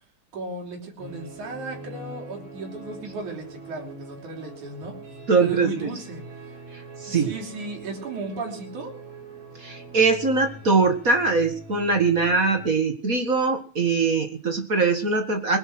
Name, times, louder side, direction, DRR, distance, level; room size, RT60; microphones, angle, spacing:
voice 1, 0.3-4.9 5.4-6.2 7.1-8.9, right 2 dB, 90° right, 2 dB, 4.8 m, -35 dB
sound 1, 1.0-12.7, right 2 dB, 65° right, 6.2 m, -43 dB
voice 2, 5.3-5.9 7.0-7.3 9.6-15.6, right 4 dB, 35° right, 6 dB, 1.7 m, -22 dB
20.0 x 10.0 x 6.1 m, 0.39 s
omnidirectional pair, 3.3 m